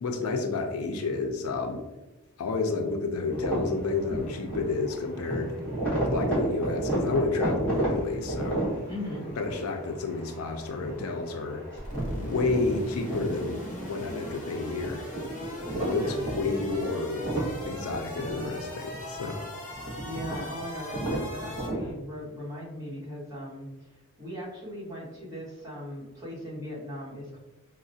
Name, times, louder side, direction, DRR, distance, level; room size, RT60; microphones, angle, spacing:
voice 1, 0.0-1.8 2.4-5.5 6.1-8.7 9.4-11.6 12.2-15.0 15.8-16.1 16.4-17.2 17.7-19.5, left 3 dB, 75° left, 4 dB, 0.4 m, -30 dB
sound 1, 3.3-21.9, right 1 dB, 5° left, 1.3 m, -33 dB
voice 2, 8.9-9.3 15.8-16.2 20.0-27.4, equal, 15° right, -7 dB, 1.1 m, -38 dB
sound 2, 11.7-21.7, left 1 dB, 35° left, 0.9 m, -39 dB
4.8 x 2.1 x 2.6 m, 1.0 s
head